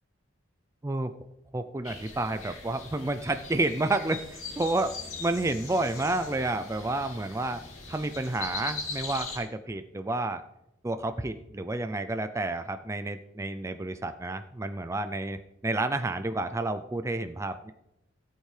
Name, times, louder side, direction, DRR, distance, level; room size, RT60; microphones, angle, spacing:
voice 1, 0.8-1.1 1.5-7.6 7.9-10.4 10.8-17.7, right 2 dB, 15° right, 9 dB, 0.3 m, -30 dB
sound 1, 1.8-9.4, left 3 dB, 90° left, 2.6 m, -40 dB
17.0 x 8.1 x 3.3 m, 0.87 s
head